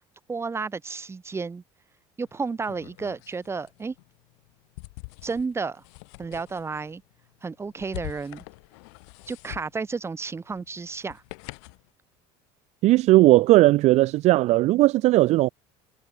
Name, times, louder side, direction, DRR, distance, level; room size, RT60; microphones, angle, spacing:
voice 1, 0.3-1.6 2.2-3.9 5.2-5.8 6.2-7.0 7.4-8.4 9.3-11.2, right 4 dB, 20° right, 1.6 m, -32 dB
sound 1, 2.3-11.9, left 33 dB, 85° left, 3.0 m, -45 dB
voice 2, 12.8-15.5, right 18 dB, 55° right, 0.4 m, -17 dB
cardioid pair, 120°, 14 cm